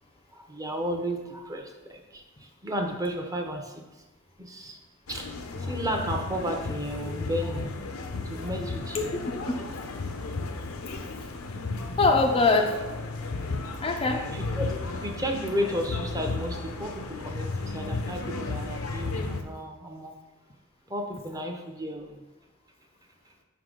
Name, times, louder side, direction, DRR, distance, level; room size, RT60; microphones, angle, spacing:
voice 1, 0.3-3.8 4.4-4.8 5.1-7.7 8.2-9.1 14.3-20.2 20.9-22.2, equal, 15° right, 2 dB, 0.7 m, -33 dB
sound 1, 5.1-19.4, left 3 dB, 70° left, 0.6 m, -34 dB
voice 2, 8.6-9.7 11.1-11.2 12.0-12.8 13.8-14.3, left 3 dB, 25° left, 3 dB, 0.4 m, -24 dB
5.8 x 4.7 x 3.8 m, 1.1 s
head